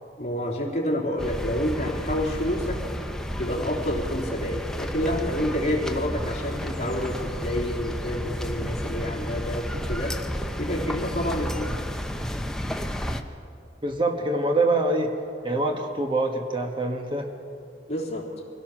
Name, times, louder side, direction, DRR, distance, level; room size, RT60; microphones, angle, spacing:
voice 1, 0.2-2.9 3.4-10.2 10.6-11.8 17.9-18.3, equal, 40° left, -2 dB, 3.4 m, -28 dB
sound 1, 1.2-13.2, equal, 5° left, 0.8 m, -31 dB
voice 2, 13.8-15.1 15.4-17.3, right 2 dB, 25° right, 3 dB, 1.3 m, -25 dB
25.0 x 17.5 x 6.1 m, 2.5 s
head